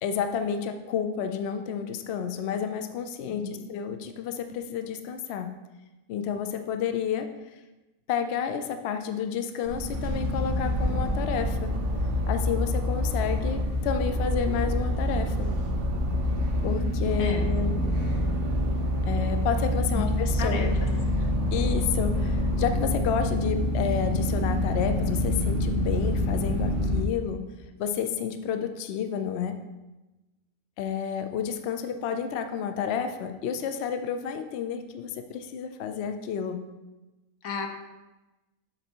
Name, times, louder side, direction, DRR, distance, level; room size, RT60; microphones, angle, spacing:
voice 1, 0.0-5.5 6.1-7.3 8.1-11.7 12.3-15.5 16.6-17.7 19.1-20.8 21.5-27.4 27.8-29.6 30.8-36.6, left 7 dB, 65° left, 8 dB, 0.7 m, -30 dB
voice 2, 3.3-3.7 17.2-17.5 19.9-20.1 20.4-20.9 21.2-21.3 37.4-37.7, left 5 dB, 85° left, 4 dB, 1.3 m, -34 dB
sound 1, 9.6-27.0, left 1 dB, 50° right, 0.9 m, -27 dB
sound 2, 10.8-13.6 13.9-16.7 17.1-19.8 20.3-22.9, right 3 dB, 70° right, 0.5 m, -35 dB
7.0 x 4.1 x 4.4 m, 1.1 s
omnidirectional pair, 1.4 m